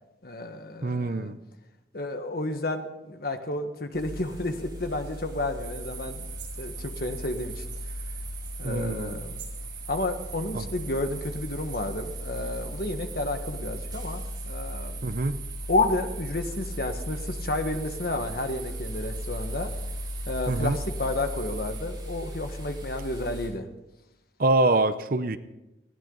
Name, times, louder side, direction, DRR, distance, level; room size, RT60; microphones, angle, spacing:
voice 1, 0.2-1.3 1.9-6.3 6.6-7.6 8.6-9.4 9.9-15.0 15.7-19.7 20.3-23.7, left 2 dB, 55° left, 7 dB, 1.5 m, -31 dB
voice 2, 0.8-1.4 8.6-9.2 10.5-10.6 15.0-15.4 20.5-20.8 24.4-25.4, right 2 dB, 50° right, 12 dB, 0.7 m, -25 dB
sound 1, 3.9-23.5, left 1 dB, 25° right, 5.2 m, -37 dB
sound 2, 5.6-21.8, right 7 dB, 90° right, 6.8 m, -43 dB
19.5 x 16.5 x 4.0 m, 0.99 s
head